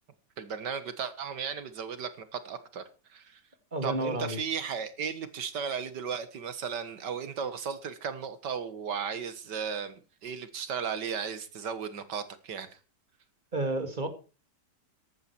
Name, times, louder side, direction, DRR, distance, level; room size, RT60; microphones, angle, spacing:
voice 1, 0.4-2.8 3.1-3.4 3.8-12.8, right 7 dB, 80° right, 2.1 m, -35 dB
voice 2, 3.7-4.4 13.5-14.1, right 2 dB, 25° right, 2.2 m, -30 dB
14.0 x 11.5 x 4.5 m
omnidirectional pair, 1.8 m